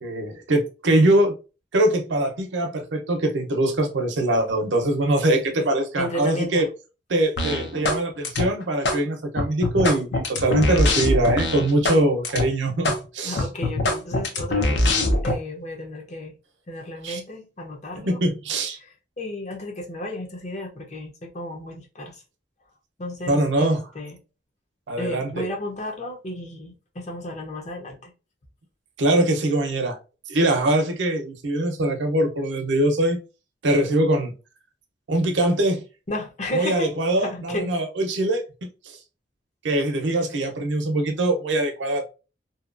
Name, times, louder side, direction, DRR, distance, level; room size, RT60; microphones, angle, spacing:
voice 1, 0.0-1.3 1.7-6.7 7.1-13.4 17.0-17.2 17.9-18.8 23.3-23.8 24.9-25.5 29.0-30.0 30.3-33.2 33.6-34.3 35.1-35.8 36.5-39.0 39.6-42.1, right 1 dB, 90° right, 0.6 m, -22 dB
voice 2, 6.0-6.7 13.2-14.9 15.2-16.4 16.7-18.2 19.2-22.2 23.0-24.2 25.0-28.1 36.1-36.9 37.2-37.7, left 1 dB, 40° left, 0.6 m, -33 dB
sound 1, 7.4-8.0 8.2-9.0 9.4-12.0 12.2-12.4 12.8-13.0 13.4-15.3, left 2 dB, 80° left, 0.6 m, -22 dB
2.7 x 2.2 x 2.4 m
head